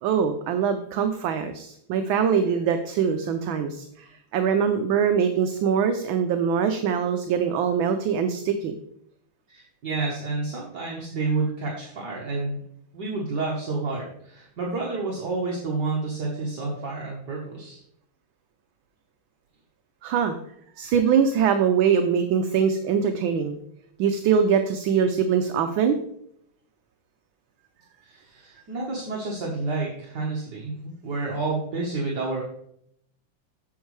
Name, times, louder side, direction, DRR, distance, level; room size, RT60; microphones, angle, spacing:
voice 1, 0.0-8.7 20.0-20.4 20.8-23.6 24.0-26.0, right 7 dB, 75° right, 7 dB, 1.3 m, -23 dB
voice 2, 9.5-12.6 12.9-17.8 28.0-32.4, right 3 dB, 55° right, -3 dB, 1.7 m, -29 dB
8.0 x 7.2 x 3.2 m, 0.72 s
omnidirectional pair, 2.4 m